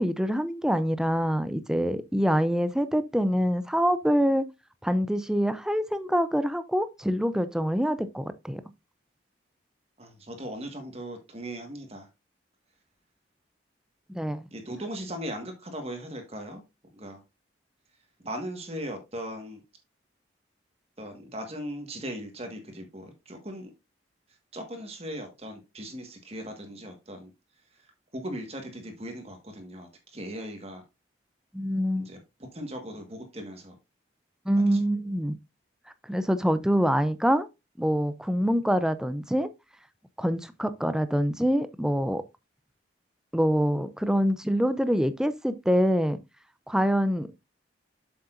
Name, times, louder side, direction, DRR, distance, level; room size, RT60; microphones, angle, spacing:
voice 1, 0.0-4.5 4.8-8.6 14.1-14.4 31.5-32.1 34.5-35.4 36.1-37.5 37.8-39.5 40.2-42.2 43.3-46.2 46.7-47.3, equal, 5° right, 0.5 m, -25 dB
voice 2, 10.0-12.1 14.5-16.6 16.9-17.2 18.2-19.6 21.0-23.7 24.5-27.3 28.1-30.8 32.0-32.2 32.5-33.7 34.6-34.8, equal, 35° right, 1.5 m, -38 dB
7.6 x 7.0 x 2.5 m
head